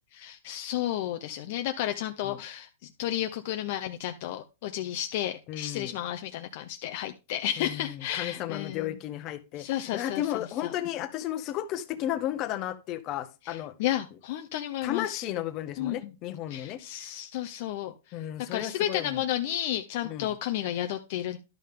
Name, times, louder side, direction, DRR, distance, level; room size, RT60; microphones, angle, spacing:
voice 1, 0.1-2.7 3.0-9.0 9.6-10.3 10.6-10.7 13.4-15.2 15.8-16.1 16.5-17.9 18.5-21.4, left 12 dB, 50° left, 0.6 m, -32 dB
voice 2, 5.5-5.9 7.6-9.7 9.9-13.7 14.8-16.8 18.1-19.2 20.0-20.3, left 12 dB, 35° left, 1.0 m, -33 dB
11.5 x 5.6 x 3.7 m
supercardioid pair, 150°, 0 cm